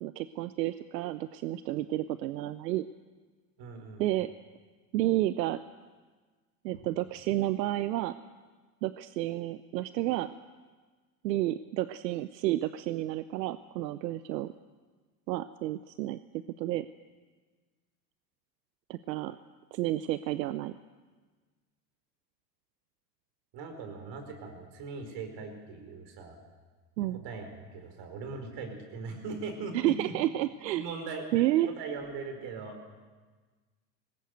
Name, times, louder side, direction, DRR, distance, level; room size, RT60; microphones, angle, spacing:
voice 1, 0.0-2.9 4.0-4.3 4.9-5.6 6.6-8.1 8.8-10.3 11.2-14.5 15.3-16.9 18.9-19.4 19.7-20.7 27.0-27.2 29.7-30.8 31.3-31.7, right 15 dB, 90° right, 13 dB, 0.7 m, -30 dB
voice 2, 3.6-4.0 6.7-6.8 23.5-26.4 27.0-27.5 27.7-30.1 30.7-32.8, right 4 dB, 55° right, 5 dB, 5.0 m, -40 dB
19.5 x 17.5 x 7.9 m, 1.4 s
hypercardioid pair, 95°, 49 cm